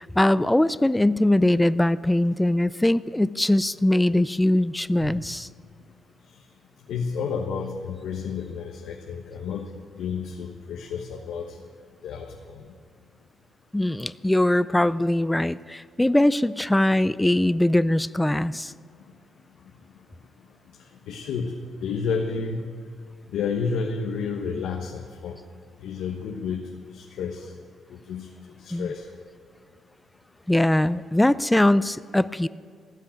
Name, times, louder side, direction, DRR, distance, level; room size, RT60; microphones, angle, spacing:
voice 1, 0.0-5.5 13.7-18.7 28.7-28.9 30.5-32.5, left 1 dB, 10° left, 16 dB, 0.3 m, -21 dB
voice 2, 6.9-9.7 10.0-11.6 12.0-12.6 21.1-21.5 21.8-22.7 23.3-25.4 25.8-26.6 26.9-27.5 27.9-28.3 28.6-29.0, left 5 dB, 90° left, 2 dB, 1.1 m, -30 dB
15.0 x 8.4 x 9.1 m, 2.1 s
cardioid pair, 115°, 0 cm